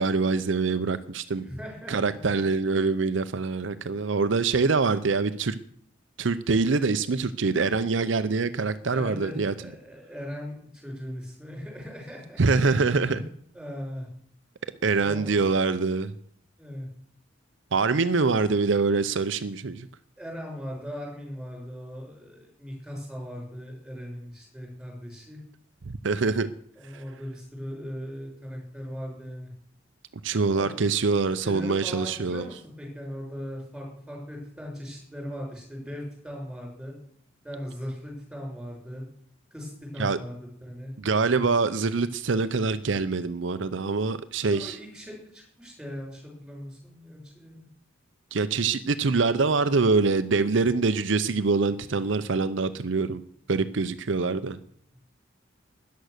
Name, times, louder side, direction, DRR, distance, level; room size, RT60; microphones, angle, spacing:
voice 1, 0.0-1.4 1.9-5.5 6.2-9.5 12.4-13.2 14.8-16.1 17.7-19.9 25.8-26.5 30.2-32.5 40.0-40.2 41.0-44.7 48.3-53.2 53.5-54.6, right 4 dB, 70° right, 0.6 m, -24 dB
voice 2, 1.4-2.4 8.9-12.4 12.8-13.2 13.5-14.1 15.0-15.3 16.6-16.9 18.0-18.1 20.2-25.4 26.8-29.5 30.5-30.8 31.4-36.9 37.4-39.0 39.5-40.9 44.5-47.7, equal, 5° right, 5.9 m, -39 dB
13.0 x 10.5 x 6.6 m
head